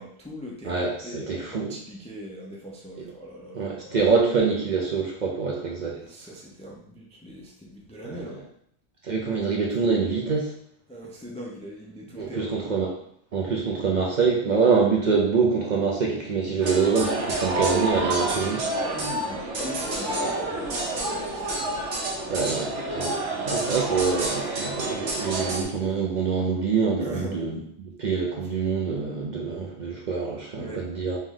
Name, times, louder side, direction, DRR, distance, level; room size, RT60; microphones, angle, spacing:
voice 1, 0.0-4.0 5.9-8.4 10.9-12.7 18.9-21.6 27.0-27.4 30.6-30.8, equal, 10° left, -2 dB, 0.3 m, -40 dB
voice 2, 0.6-1.7 3.5-6.0 8.0-8.2 9.0-10.5 12.1-12.9 13.3-18.6 22.3-23.2 23.5-27.6 27.8-31.2, right 5 dB, 50° right, -1 dB, 0.6 m, -25 dB
sound 1, 16.6-25.6, right 2 dB, 80° right, 1.1 m, -28 dB
3.3 x 3.1 x 3.6 m, 0.69 s
omnidirectional pair, 1.2 m